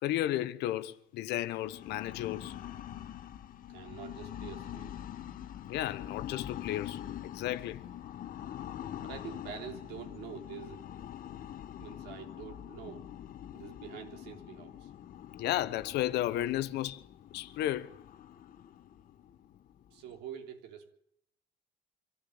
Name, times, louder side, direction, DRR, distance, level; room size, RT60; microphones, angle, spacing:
voice 1, 0.0-2.6 5.7-7.8 15.4-17.0 17.3-17.9, left 14 dB, 80° left, 1.2 m, -33 dB
sound 1, 1.5-20.2, left 11 dB, 55° left, 1.3 m, -44 dB
voice 2, 3.7-5.0 9.0-10.8 11.8-13.1 13.5-14.9 19.9-20.9, right 8 dB, 90° right, 3.7 m, -46 dB
25.5 x 14.5 x 8.8 m
cardioid pair, 110°, 17 cm